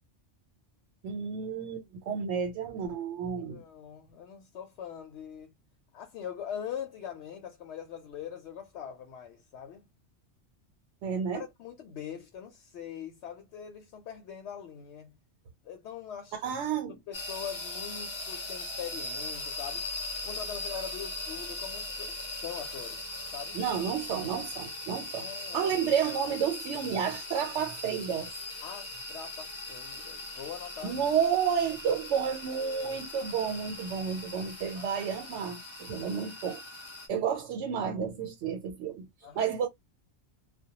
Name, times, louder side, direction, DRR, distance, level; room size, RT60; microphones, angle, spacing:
voice 1, 1.0-3.6 11.0-11.4 16.3-17.0 23.5-25.3 25.5-28.3 30.8-36.6 37.1-39.1 39.3-39.7, right 7 dB, 85° right, 0.9 m, -31 dB
voice 2, 3.5-5.5 5.9-9.8 11.3-15.1 15.6-16.3 17.1-23.6 25.1-25.8 28.6-31.0 34.7-35.0 39.2-39.7, left 8 dB, 75° left, 0.9 m, -42 dB
sound 1, 17.1-37.1, left 2 dB, 30° left, 0.6 m, -40 dB
2.1 x 2.1 x 2.8 m
omnidirectional pair, 1.2 m